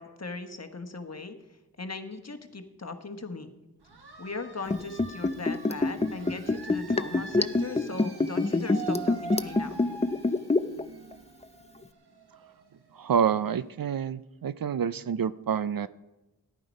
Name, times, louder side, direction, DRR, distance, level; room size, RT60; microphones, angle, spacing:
voice 1, 0.0-3.5 4.2-9.8, left 3 dB, 40° left, 6 dB, 1.2 m, -39 dB
sound 1, 3.8-13.3, right 4 dB, 85° right, 1.5 m, -43 dB
Liquid, 4.7-10.8 11.1-11.2, left 3 dB, 15° left, 0.5 m, -25 dB
voice 2, 12.9-15.9, right 7 dB, 60° right, 15 dB, 0.5 m, -28 dB
14.0 x 10.5 x 5.2 m, 1.0 s
wide cardioid pair, 70°, 39 cm